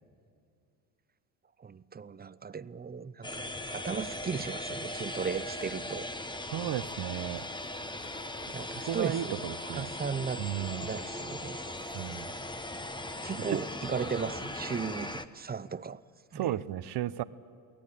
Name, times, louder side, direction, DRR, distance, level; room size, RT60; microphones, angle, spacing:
voice 1, 1.6-6.3 8.5-10.4 10.8-12.0 13.2-16.0 16.3-16.6, right 6 dB, 20° right, 0.6 m, -36 dB
sound 1, 3.2-15.2, left 1 dB, 10° left, 1.2 m, -39 dB
voice 2, 6.5-7.4 8.9-9.9 10.4-10.9 11.9-12.3 13.5-13.6 16.3-17.2, right 12 dB, 50° right, 1.0 m, -34 dB
23.5 x 17.5 x 8.5 m
supercardioid pair, 75°, 50 cm